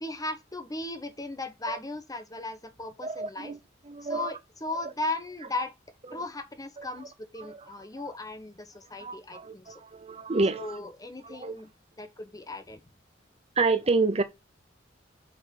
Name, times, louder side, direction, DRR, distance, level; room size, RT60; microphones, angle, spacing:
voice 1, 0.0-3.5 4.0-5.7 6.1-9.8 10.6-11.7 12.0-12.8, left 2 dB, 20° left, 1.2 m, -37 dB
voice 2, 3.0-3.6 3.9-4.4 6.1-6.2 6.8-6.9 7.4-7.7 8.0-8.1 9.0-10.8 11.2-11.6 13.6-14.2, right 3 dB, 35° right, 0.7 m, -29 dB
6.8 x 5.6 x 5.4 m
head